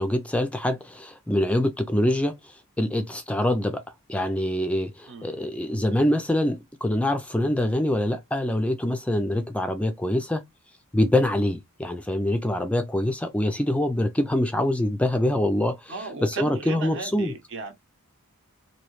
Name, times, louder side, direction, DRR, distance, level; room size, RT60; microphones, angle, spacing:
voice 1, 0.0-3.8 4.1-10.4 10.9-15.9 16.2-17.3, left 1 dB, 5° left, 0.3 m, -25 dB
voice 2, 5.1-5.4 15.9-17.7, right 3 dB, 60° right, 0.9 m, -36 dB
3.0 x 2.7 x 3.0 m
head